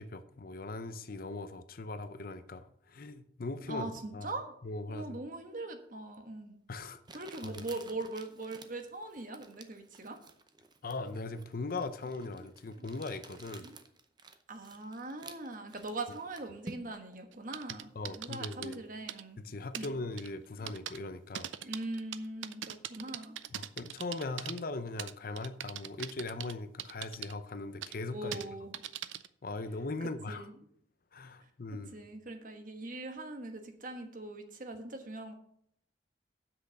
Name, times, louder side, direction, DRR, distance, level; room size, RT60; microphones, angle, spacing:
voice 1, 0.0-3.8 4.1-4.3 4.6-5.2 6.7-7.6 10.8-13.7 18.0-18.8 19.4-21.5 23.5-28.4 29.4-30.5 31.1-32.0, left 3 dB, 50° left, 11 dB, 0.6 m, -40 dB
voice 2, 3.7-4.5 4.9-10.2 12.4-12.5 12.8-13.0 13.6-13.8 14.5-19.4 19.7-20.0 20.6-20.8 21.6-23.4 28.1-28.8 30.0-30.5 31.7-35.3, right 2 dB, 45° right, 6 dB, 1.3 m, -41 dB
Crumpling crinkling, 6.1-6.2 7.1-17.1, right 3 dB, 25° right, 0.7 m, -52 dB
sound 1, 17.3-18.8 19.1-19.2 19.7-19.9 20.2-20.3 20.7-21.0 21.3-24.6 25.0-26.5 26.8-27.3 27.8-27.9 28.3-28.4 28.7-29.3, right 11 dB, 90° right, 0.5 m, -41 dB
7.8 x 6.4 x 6.7 m, 0.67 s
head